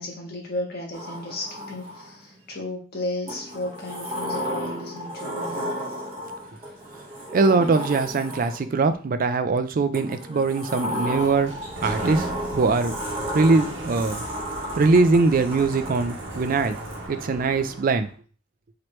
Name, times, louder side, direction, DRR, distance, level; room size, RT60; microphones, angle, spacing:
voice 1, 0.0-5.7, left 1 dB, 55° left, -1 dB, 1.3 m, -34 dB
Sliding door, 0.9-2.3 3.3-8.8 9.9-17.0, equal, 30° right, 1.2 m, -34 dB
voice 2, 7.3-11.5 11.8-13.0 13.3-14.3 14.8-16.8 17.1-18.1, right 3 dB, 45° right, 10 dB, 0.4 m, -21 dB
Sliding door 2, 10.9-18.1, right 2 dB, 75° right, 1.0 m, -36 dB
4.5 x 3.0 x 3.1 m, 0.39 s
head